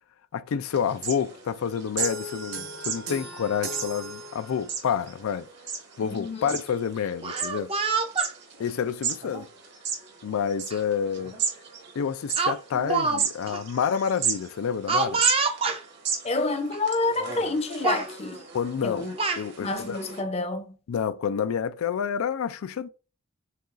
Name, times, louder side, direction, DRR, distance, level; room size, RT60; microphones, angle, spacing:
voice 1, 0.3-5.5 6.0-7.7 8.6-9.5 10.2-11.3 12.0-15.2 18.5-19.1 19.4-20.0 20.9-22.9, left 7 dB, 90° left, 0.4 m, -28 dB
sound 1, 0.6-20.2, right 6 dB, 55° right, 1.1 m, -35 dB
sound 2, 2.0-4.9, right 2 dB, 80° right, 1.6 m, -37 dB
voice 2, 6.0-6.6 16.2-18.4 18.8-19.1 19.6-20.7, left 3 dB, 30° left, 0.5 m, -28 dB
Speech, 7.1-8.3 9.2-9.4 10.7-10.8 11.2-11.4 12.4-13.2 13.5-13.6 14.9-15.8 16.7-16.8 17.2-17.5 17.8-18.1 18.9-19.4, right 4 dB, 25° right, 0.5 m, -27 dB
6.6 x 2.3 x 2.5 m
head